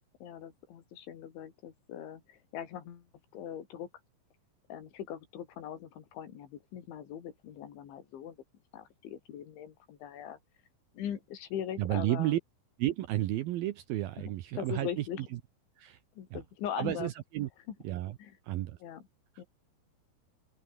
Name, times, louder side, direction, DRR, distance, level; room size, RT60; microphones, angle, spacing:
voice 1, 0.2-3.1 3.3-3.9 4.7-8.4 8.7-10.4 11.0-12.4 14.2-14.3 14.6-15.2 16.2-17.1 18.2-18.4 18.8-19.0 19.4-19.5, left 9 dB, 80° left, 5.2 m, -41 dB
voice 2, 11.8-12.4 12.8-15.0 15.8-16.0 16.3-16.4 16.8-17.5 17.8-18.2 18.4-18.8 19.4-19.5, right 14 dB, 75° right, 2.3 m, -32 dB
open air
omnidirectional pair, 5.3 m